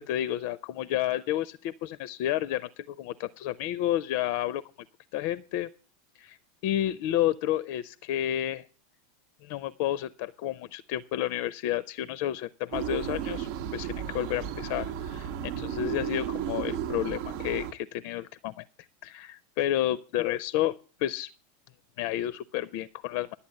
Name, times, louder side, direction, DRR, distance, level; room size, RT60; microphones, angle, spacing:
voice 1, 0.0-4.6 5.1-5.7 6.2-6.4 6.6-8.6 9.4-18.6 19.0-20.7 21.0-21.3 22.0-23.4, left 12 dB, 55° left, 17 dB, 0.5 m, -31 dB
sound 1, 12.7-17.7, right 10 dB, 55° right, 0.8 m, -34 dB
11.5 x 8.4 x 6.5 m, 0.38 s
figure-of-eight pair, 85°, 0 cm